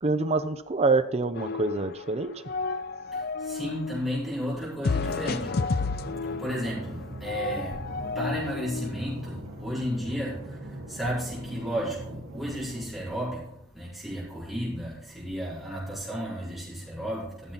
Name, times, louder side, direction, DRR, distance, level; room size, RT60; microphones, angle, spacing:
voice 1, 0.0-2.4, right 3 dB, 30° right, 10 dB, 0.6 m, -26 dB
sound 1, 1.4-2.1 2.4-4.0 4.8-8.9, left 4 dB, 45° left, 0.5 m, -31 dB
voice 2, 3.1-5.6 6.3-7.9 8.1-17.5, equal, ahead, -9 dB, 5.3 m, -33 dB
sound 2, 4.9-12.8, right 1 dB, 70° right, 3.3 m, -41 dB
14.5 x 7.4 x 4.1 m, 0.76 s
head